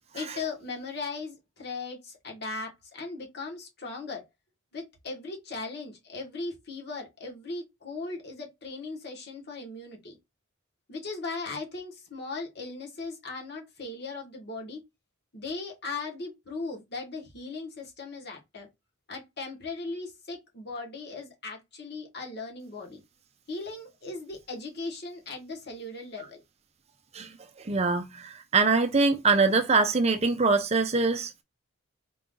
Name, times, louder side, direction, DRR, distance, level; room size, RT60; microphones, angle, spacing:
voice 1, 0.1-4.2 4.7-10.2 10.9-14.8 15.3-18.7 19.1-23.0 23.5-26.4, left 3 dB, 50° left, 1.5 m, -38 dB
voice 2, 27.6-31.4, right 3 dB, 30° right, 0.5 m, -23 dB
4.5 x 2.6 x 3.8 m
head